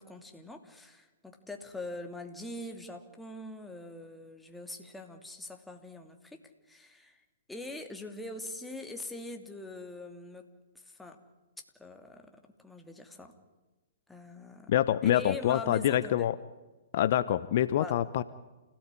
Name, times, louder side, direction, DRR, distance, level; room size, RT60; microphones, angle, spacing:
voice 1, 0.0-6.4 6.7-7.2 7.5-10.5 10.7-11.2 11.8-13.3 14.1-14.7 15.0-16.3 17.8-18.0, left 2 dB, 5° left, 4 dB, 2.8 m, -43 dB
voice 2, 14.7-16.3 16.9-18.2, left 12 dB, 55° left, 14 dB, 0.9 m, -26 dB
28.5 x 17.0 x 9.9 m, 1.2 s
hypercardioid pair, 120°, 0 cm